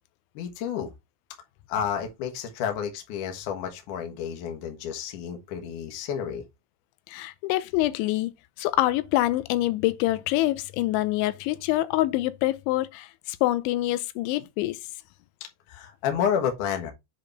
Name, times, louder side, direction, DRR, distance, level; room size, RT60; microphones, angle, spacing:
voice 1, 0.3-0.9 1.7-6.4 15.7-16.9, left 8 dB, 60° left, 2.3 m, -30 dB
voice 2, 7.1-8.3 8.6-14.8, left 16 dB, 90° left, 3.0 m, -25 dB
7.8 x 4.2 x 3.3 m
omnidirectional pair, 5.3 m